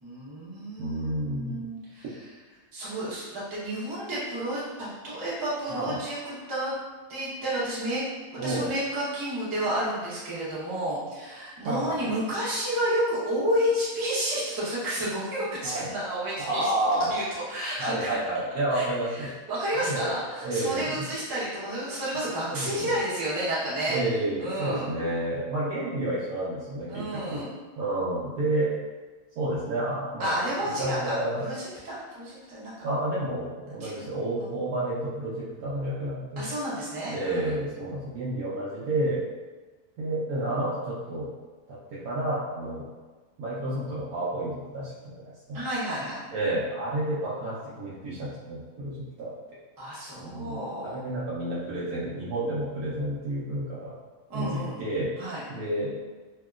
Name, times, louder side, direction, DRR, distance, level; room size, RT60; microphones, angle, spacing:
voice 1, 0.0-2.0 2.7-6.7 7.1-8.0 8.4-16.7 17.1-17.2 17.5-18.2 18.7-18.8 19.1-24.0 24.4-24.9 26.9-27.5 30.2-32.7 33.8-33.9 34.4-34.5 36.4-37.5 45.5-46.2 49.8-50.9 54.3-54.8 55.2-55.4, right 1 dB, 20° right, -9 dB, 0.5 m, -31 dB
voice 2, 0.8-1.6 5.7-6.0 8.4-8.7 11.6-12.1 15.6-15.9 16.4-17.1 17.8-19.3 19.8-20.2 20.4-21.0 22.5-22.9 23.9-27.4 27.8-28.7 29.4-30.3 30.6-31.4 32.8-36.6 37.1-39.2 40.0-41.3 41.7-42.9 43.4-45.6 46.3-49.3 50.2-53.9 54.3-55.1 55.5-56.0, right 1 dB, 70° right, -9 dB, 1.1 m, -30 dB
2.8 x 2.8 x 2.4 m, 1.3 s
omnidirectional pair, 1.6 m